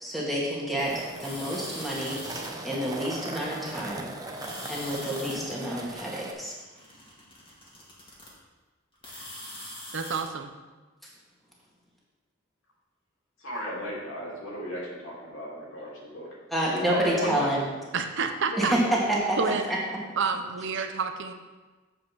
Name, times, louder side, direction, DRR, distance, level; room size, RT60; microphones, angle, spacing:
voice 1, 0.0-2.2 2.6-4.1 4.7-6.5 16.5-17.6 18.6-18.8 19.7-19.8, right 1 dB, ahead, -6 dB, 2.0 m, -29 dB
sound 1, 0.8-6.3, right 2 dB, 20° right, 0.7 m, -39 dB
sound 2, 1.2-2.5 3.3-4.0 4.3-5.4 6.3-8.3 8.9-10.2, left 1 dB, 25° left, 1.9 m, -42 dB
voice 2, 9.9-10.5 17.9-18.8 19.4-19.6 20.2-21.3, right 5 dB, 60° right, 6 dB, 0.7 m, -29 dB
voice 3, 13.4-16.3 16.6-17.6, equal, 75° left, -5 dB, 2.7 m, -34 dB
7.6 x 5.1 x 6.3 m, 1.3 s
head